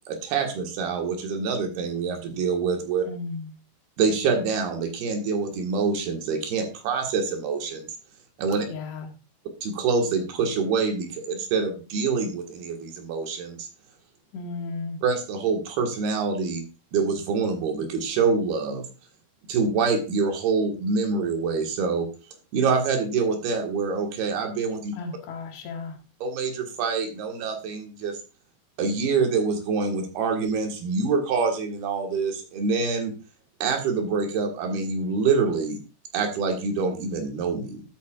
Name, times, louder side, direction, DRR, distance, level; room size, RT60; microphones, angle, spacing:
voice 1, 0.1-3.1 4.0-7.9 8.4-8.7 9.6-13.7 15.0-16.6 16.9-18.9 19.5-22.1 22.5-25.0 26.2-28.2 28.8-33.1 33.6-35.8 36.1-37.8, right 5 dB, 70° right, 3 dB, 3.6 m, -26 dB
voice 2, 3.1-3.5 8.7-9.1 14.3-15.0 25.0-26.0, left 4 dB, 85° left, 2 dB, 4.0 m, -34 dB
12.5 x 8.4 x 2.4 m, 0.31 s
omnidirectional pair, 4.8 m